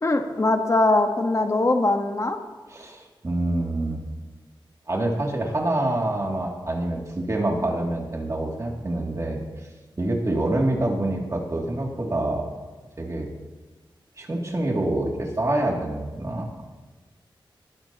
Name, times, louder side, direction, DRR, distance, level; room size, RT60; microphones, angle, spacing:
voice 1, 0.0-2.4, left 2 dB, 35° left, 5 dB, 1.3 m, -21 dB
voice 2, 2.7-4.0 4.9-9.4 10.0-12.5 13.0-13.3 14.2-16.5, right 1 dB, 35° right, -1 dB, 2.6 m, -26 dB
20.0 x 12.5 x 3.0 m, 1.3 s
wide cardioid pair, 105°, 9 cm